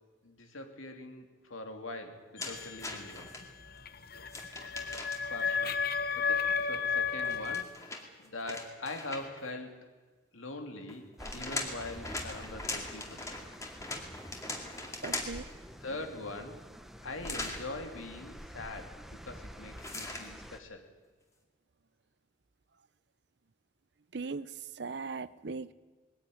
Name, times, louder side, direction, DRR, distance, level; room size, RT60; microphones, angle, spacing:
voice 1, 0.2-3.3 5.2-9.8 10.3-11.0 11.3-13.4 15.8-16.6 17.0-20.9, left 2 dB, 90° left, 5 dB, 3.0 m, -43 dB
sound 1, 2.4-7.6, left 5 dB, 45° left, 0.9 m, -33 dB
sound 2, 2.4-3.4 4.3-5.4 7.2-9.5 10.9-15.5 17.2-17.6 19.8-20.3, left 2 dB, 15° left, 2.3 m, -40 dB
sound 3, 11.2-20.6, equal, ahead, 0.9 m, -48 dB
voice 2, 15.0-15.4 24.1-24.5 24.8-25.7, right 4 dB, 55° right, 18 dB, 0.6 m, -38 dB
21.0 x 15.0 x 9.5 m, 1.4 s
head